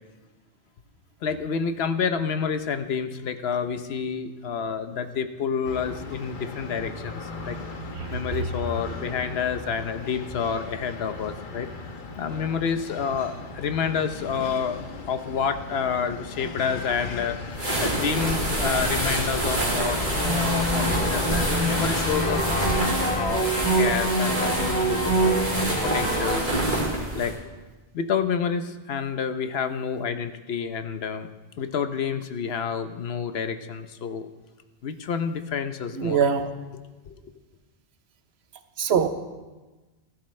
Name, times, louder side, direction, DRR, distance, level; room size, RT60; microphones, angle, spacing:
voice 1, 1.2-7.6 8.1-11.7 12.2-22.4 23.1-23.5 23.8-26.5 27.1-27.4 27.9-31.3 31.6-34.3 34.8-36.2 37.1-37.2, left 6 dB, 75° left, 9 dB, 1.0 m, -29 dB
sound 1, 5.6-22.9, left 3 dB, 55° left, 1.1 m, -37 dB
sound 2, 17.5-27.3, right 1 dB, 50° right, 2.7 m, -27 dB
sound 3, 19.8-26.4, right 1 dB, 10° left, 2.9 m, -26 dB
voice 2, 36.0-36.5 38.8-39.1, right 7 dB, 90° right, 9 dB, 1.1 m, -22 dB
15.5 x 13.0 x 3.2 m, 1.2 s
omnidirectional pair, 1.0 m